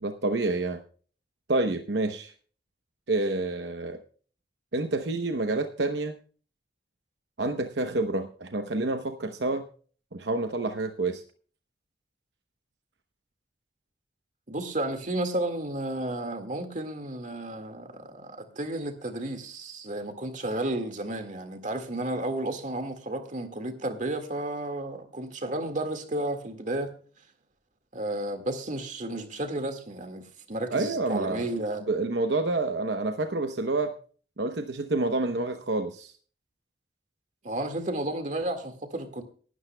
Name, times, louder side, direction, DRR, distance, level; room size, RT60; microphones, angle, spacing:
voice 1, 0.0-0.8 1.5-2.3 3.1-4.0 4.7-6.2 7.4-9.7 10.1-11.2 30.7-31.4 31.9-33.9 34.4-36.1, right 2 dB, 70° right, 0.9 m, -28 dB
voice 2, 14.5-26.9 27.9-31.8 37.4-39.2, right 1 dB, 45° right, 1.9 m, -32 dB
19.0 x 12.5 x 2.3 m
head